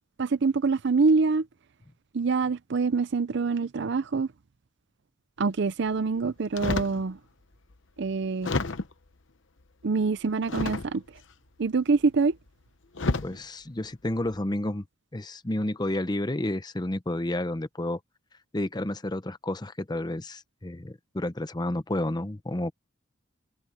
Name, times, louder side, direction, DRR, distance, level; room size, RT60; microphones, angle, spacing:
voice 1, 0.2-1.5 2.1-4.3 5.4-7.2 8.0-8.5 9.8-11.0 11.6-12.3, right 4 dB, 60° right, 0.5 m, -25 dB
sound 1, 6.6-7.0 7.7-7.8 8.4-9.1 10.5-11.2 12.3-12.5 12.9-13.4 14.1-14.4, left 3 dB, 65° left, 0.9 m, -30 dB
voice 2, 13.2-14.9 15.1-18.0 18.5-22.7, left 1 dB, 20° left, 0.8 m, -30 dB
head